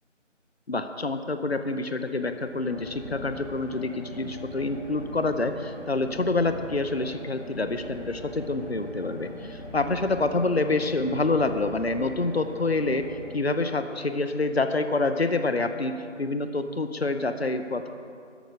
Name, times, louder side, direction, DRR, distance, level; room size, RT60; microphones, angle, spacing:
voice 1, 0.7-17.9, left 3 dB, 55° left, 9 dB, 0.8 m, -27 dB
sound 1, 2.0-13.9, left 1 dB, 25° left, 3.0 m, -41 dB
13.5 x 11.0 x 5.0 m, 2.4 s
figure-of-eight pair, 175°, 38 cm